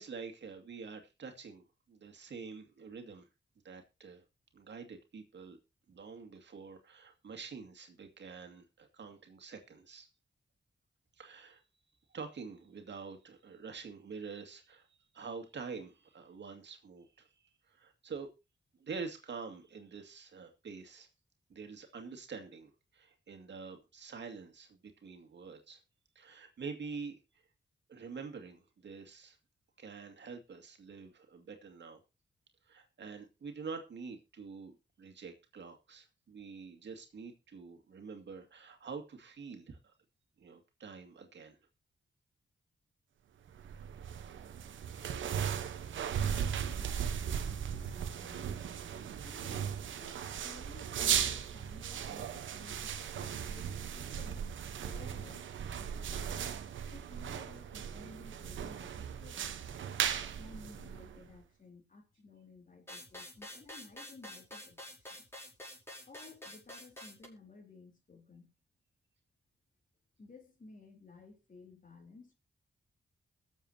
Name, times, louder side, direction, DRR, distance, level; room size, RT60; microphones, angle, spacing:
voice 1, 0.0-3.3 3.6-4.2 4.5-5.6 5.9-10.1 11.2-11.6 12.1-14.9 15.1-17.3 17.7-18.3 18.7-21.1 21.5-25.8 26.2-27.2 27.9-29.4 29.8-32.0 32.7-39.9 40.4-41.6, right 5 dB, 65° right, 2.2 m, -46 dB
sound 1, 43.5-61.4, right 8 dB, 85° right, 1.0 m, -37 dB
voice 2, 46.0-54.5 54.8-56.4 56.9-59.6 60.4-64.8 65.1-65.2 66.0-68.5 70.2-72.3, left 3 dB, 45° left, 3.7 m, -56 dB
sound 2, 62.9-67.3, left 1 dB, 15° left, 6.1 m, -48 dB
22.0 x 7.4 x 2.8 m
cardioid pair, 60°, 19 cm